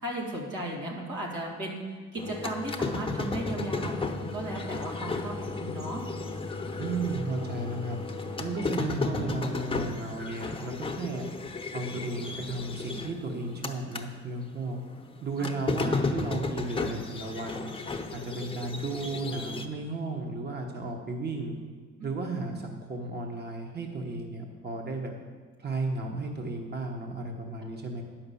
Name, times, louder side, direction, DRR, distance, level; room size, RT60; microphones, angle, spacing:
voice 1, 0.0-6.0 15.4-15.9, right 1 dB, 85° right, -2 dB, 2.4 m, -36 dB
sound 1, 2.2-14.1 14.4-19.7, left 3 dB, 15° left, 0.9 m, -34 dB
voice 2, 6.8-8.0 8.4-11.3 11.7-14.8 15.2-17.7 18.1-21.6 22.0-25.1 25.6-28.0, right 3 dB, 35° right, 2 dB, 1.2 m, -34 dB
9.6 x 5.8 x 7.0 m, 1.5 s
cardioid pair, 90°, 30 cm